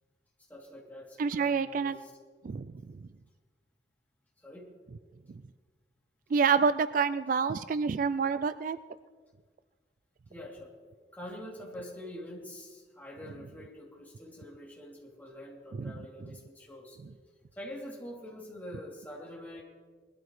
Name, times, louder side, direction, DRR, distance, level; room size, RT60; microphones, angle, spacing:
voice 1, 0.5-2.1 4.4-4.7 10.3-10.7 11.1-17.0 17.5-19.6, left 1 dB, 10° left, -4 dB, 2.9 m, -45 dB
voice 2, 1.2-2.0 2.4-2.7 5.3-5.4 6.3-8.8 15.8-16.3, right 5 dB, 50° right, 13 dB, 0.3 m, -28 dB
21.0 x 13.0 x 3.2 m, 1.5 s
head